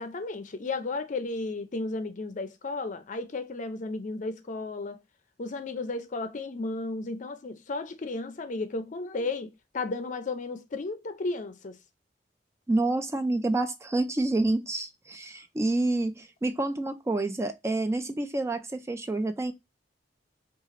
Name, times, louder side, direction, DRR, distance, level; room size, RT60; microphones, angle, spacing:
voice 1, 0.0-5.0 5.4-11.8, left 3 dB, 45° left, 0.5 m, -34 dB
voice 2, 12.7-19.5, right 2 dB, 15° right, 0.3 m, -28 dB
3.2 x 2.4 x 3.7 m
head